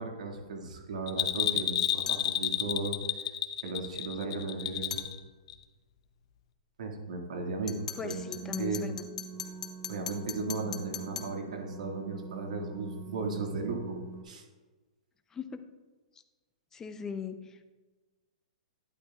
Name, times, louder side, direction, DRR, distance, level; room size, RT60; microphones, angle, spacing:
voice 1, 0.0-3.0 3.6-5.0 6.8-7.8 8.0-8.2 8.6-8.9 9.9-14.0 14.2-14.4, right 3 dB, 80° right, 2 dB, 1.9 m, -36 dB
Bell, 1.1-5.2 5.5-5.6, left 12 dB, 50° left, 0.7 m, -30 dB
sound 1, 2.1-2.3 4.9-5.1 7.7-11.4, left 7 dB, 85° left, 0.9 m, -41 dB
voice 2, 8.0-9.0 15.3-15.6 16.7-17.7, left 6 dB, 15° left, 9 dB, 0.5 m, -39 dB
sound 2, 8.0-14.2, right 5 dB, 30° right, 0.9 m, -44 dB
11.5 x 9.7 x 2.3 m, 1.3 s
hypercardioid pair, 150°, 4 cm